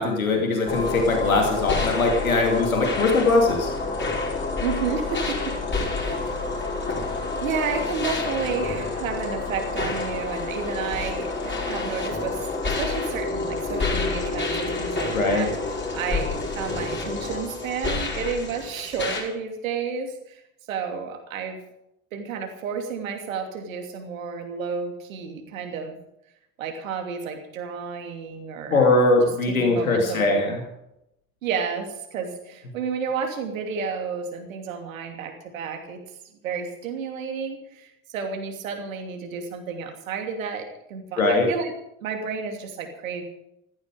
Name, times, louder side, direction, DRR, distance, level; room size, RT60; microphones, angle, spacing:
voice 1, 0.0-3.7 15.1-15.5 28.7-30.5 41.2-41.5, left 3 dB, 80° left, 2 dB, 2.7 m, -21 dB
sound 1, 0.7-19.2, left 3 dB, 25° left, 5.2 m, -28 dB
voice 2, 4.6-5.4 6.0-6.3 6.9-20.4 20.7-21.6 22.1-26.0 26.6-28.9 29.2-30.3 31.4-36.0 36.4-41.7 42.0-43.2, right 6 dB, 75° right, 4 dB, 2.9 m, -31 dB
15.5 x 14.5 x 5.1 m, 0.82 s
figure-of-eight pair, 60°, 41 cm